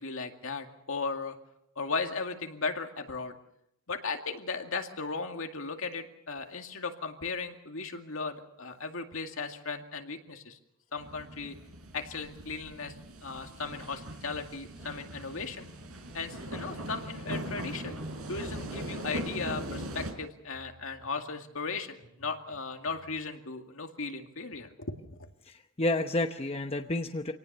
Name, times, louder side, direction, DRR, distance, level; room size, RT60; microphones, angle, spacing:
voice 1, 0.0-1.4 1.8-3.4 3.9-10.6 10.9-11.6 11.9-12.9 13.2-15.7 16.1-18.0 18.3-25.0, left 4 dB, 65° left, 4 dB, 2.3 m, -36 dB
sound 1, 11.0-20.1, right 1 dB, 80° right, 4.4 m, -40 dB
sound 2, 17.8-23.2, right 1 dB, 50° right, 7.1 m, -59 dB
voice 2, 25.4-27.3, left 2 dB, 25° left, 5 dB, 0.9 m, -30 dB
26.0 x 18.5 x 6.8 m, 0.77 s
head